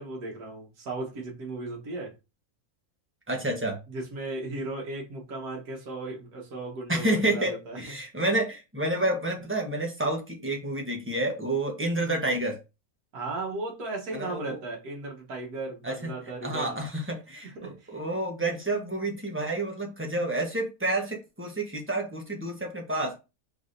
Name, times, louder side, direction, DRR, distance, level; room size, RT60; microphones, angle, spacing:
voice 1, 0.0-2.2 3.9-8.0 13.1-16.9 17.4-18.0, right 2 dB, 75° right, 1.7 m, -36 dB
voice 2, 3.3-3.8 6.9-12.6 14.1-14.6 15.8-16.1 16.4-23.1, right 1 dB, 10° right, 0.8 m, -29 dB
4.7 x 4.0 x 2.6 m
omnidirectional pair, 1.6 m